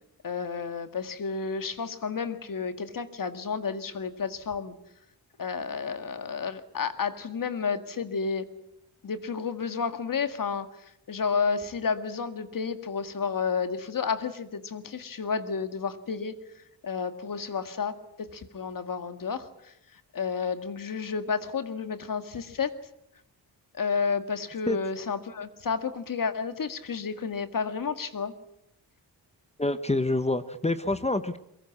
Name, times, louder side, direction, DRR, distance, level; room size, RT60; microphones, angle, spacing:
voice 1, 0.2-4.8 5.4-8.4 9.0-10.7 11.1-16.4 16.8-19.7 20.1-22.7 23.7-28.3, left 5 dB, 55° left, 10 dB, 2.0 m, -31 dB
voice 2, 29.6-31.4, left 2 dB, 15° left, 11 dB, 1.0 m, -27 dB
23.5 x 21.5 x 8.6 m, 0.79 s
wide cardioid pair, 135°, 39 cm